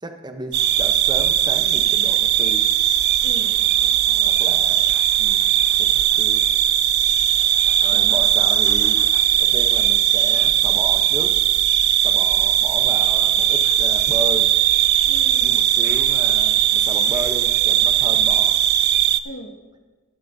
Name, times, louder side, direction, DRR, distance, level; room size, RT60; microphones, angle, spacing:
voice 1, 0.0-2.7 4.2-4.9 5.2-5.5 5.8-6.5 7.8-9.0 9.4-11.4 12.0-14.5 15.4-18.6, right 1 dB, 20° right, 5 dB, 0.9 m, -33 dB
sound 1, 0.5-19.2, right 11 dB, 50° right, 0.4 m, -18 dB
voice 2, 3.2-4.3 7.9-8.3 15.1-15.6 19.2-19.5, equal, 85° left, -1 dB, 1.9 m, -39 dB
14.0 x 13.0 x 2.7 m, 1.3 s
head